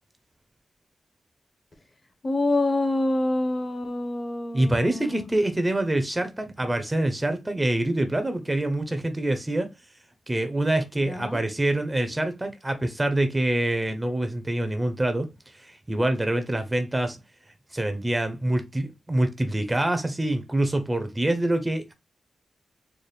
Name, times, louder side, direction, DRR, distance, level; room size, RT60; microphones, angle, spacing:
voice 1, 2.2-5.3 11.0-11.4, left 2 dB, 30° left, 0.7 m, -26 dB
voice 2, 4.5-9.7 10.3-17.2 17.7-21.9, right 1 dB, 15° right, 0.5 m, -25 dB
4.0 x 2.1 x 3.2 m
wide cardioid pair, 140°, 0 cm